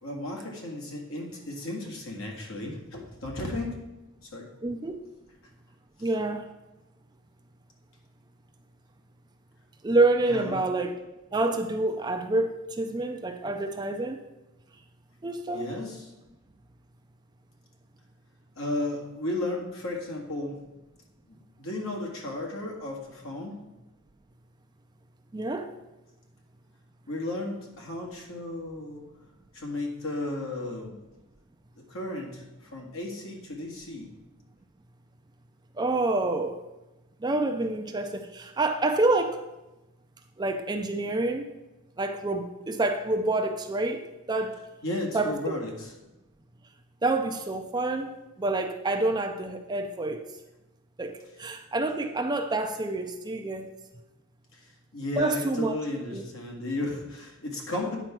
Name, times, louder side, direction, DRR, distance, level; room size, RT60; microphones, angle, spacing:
voice 1, 0.0-3.7 4.3-4.5 6.0-6.1 10.2-10.6 15.5-16.1 18.6-20.6 21.3-23.6 27.1-29.0 29.5-30.9 31.9-34.1 44.8-45.9 54.5-54.7 54.9-58.0, left 1 dB, 60° left, 0 dB, 1.8 m, -34 dB
voice 2, 4.6-5.0 6.0-6.5 9.8-11.0 11.3-14.2 15.2-15.8 25.3-25.7 35.7-36.6 37.2-39.4 40.4-41.5 42.0-44.6 45.1-45.4 47.0-50.3 51.0-53.7 55.1-55.8 56.1-56.2, right 2 dB, 20° right, 6 dB, 0.4 m, -27 dB
9.1 x 4.4 x 5.9 m, 1.0 s
head